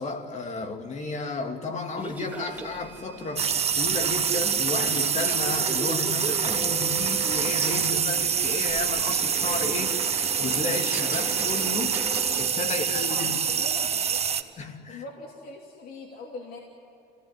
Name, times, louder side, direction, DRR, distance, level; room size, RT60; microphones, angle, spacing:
voice 1, 0.0-12.0 12.4-13.4 14.6-15.0, left 3 dB, 45° left, 2.5 m, -33 dB
sound 1, 2.0-12.5, right 2 dB, 10° right, 3.3 m, -38 dB
sound 2, 3.4-14.4, right 7 dB, 40° right, 1.3 m, -26 dB
voice 2, 12.7-14.3 14.9-16.6, left 3 dB, 60° left, 3.0 m, -41 dB
28.0 x 17.0 x 9.7 m
cardioid pair, 110°, 17 cm